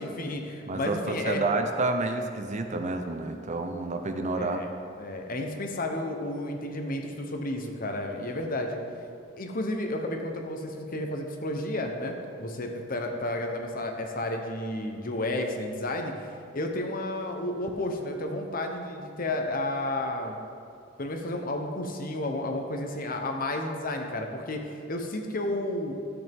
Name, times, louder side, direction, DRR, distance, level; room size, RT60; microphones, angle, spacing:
voice 1, 0.0-1.4 4.3-4.7 5.0-8.8 9.4-16.1 16.5-20.4 21.0-25.9, left 1 dB, 45° left, 3 dB, 1.0 m, -32 dB
voice 2, 0.7-4.6, right 2 dB, 40° right, 6 dB, 0.7 m, -29 dB
12.5 x 8.2 x 3.6 m, 2.4 s
head